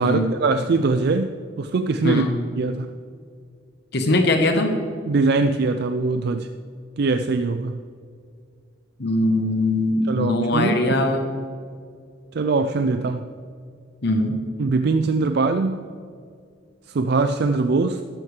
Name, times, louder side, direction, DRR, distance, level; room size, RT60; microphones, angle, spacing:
voice 1, 0.0-2.2 2.6-2.9 5.1-6.5 7.0-7.8 10.1-11.0 12.3-13.3 14.6-15.9 16.9-18.0, right 3 dB, 60° right, 8 dB, 0.4 m, -22 dB
voice 2, 3.9-4.8 9.0-11.3 14.0-14.4, left 1 dB, 60° left, 5 dB, 1.0 m, -21 dB
13.0 x 12.0 x 3.3 m, 2.2 s
head